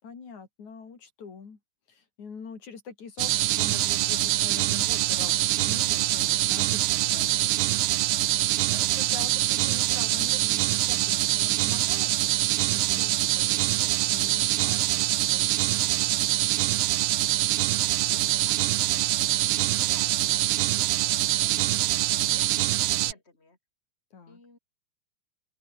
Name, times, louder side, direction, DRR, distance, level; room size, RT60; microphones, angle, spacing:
voice 1, 0.0-1.6 1.9-7.8 8.1-16.3 21.5-21.9 24.1-24.4, left 5 dB, 75° left, 5.2 m, -45 dB
sound 1, 3.2-23.1, right 14 dB, 70° right, 1.4 m, -24 dB
voice 2, 17.7-23.6 24.3-24.6, left 3 dB, 20° left, 5.6 m, -52 dB
open air
omnidirectional pair, 3.3 m